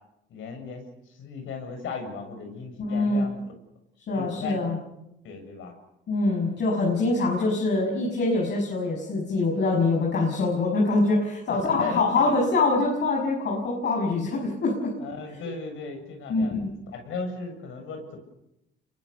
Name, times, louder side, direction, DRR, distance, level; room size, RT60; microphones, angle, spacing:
voice 1, 0.3-3.4 4.1-4.6 5.2-5.7 11.5-12.0 15.0-16.6 16.9-18.2, left 4 dB, 80° left, 5 dB, 6.9 m, -36 dB
voice 2, 2.8-3.3 4.1-4.8 6.1-14.9 16.3-16.7, left 3 dB, 60° left, -2 dB, 6.3 m, -24 dB
26.5 x 22.5 x 7.0 m, 0.86 s
cardioid pair, 90°, 20 cm